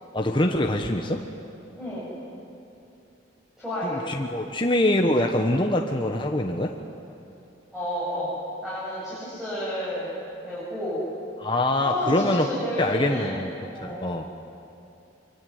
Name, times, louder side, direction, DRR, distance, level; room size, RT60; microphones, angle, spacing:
voice 1, 0.1-1.2 3.7-6.7 11.4-12.5 12.8-13.5 13.8-14.3, left 1 dB, 25° left, 3 dB, 1.2 m, -24 dB
voice 2, 1.8-2.1 3.6-4.0 7.7-8.3 8.6-10.1 10.4-11.1 11.8-13.4 13.7-14.3, equal, ahead, -9 dB, 7.6 m, -31 dB
25.5 x 24.0 x 9.6 m, 2.7 s
head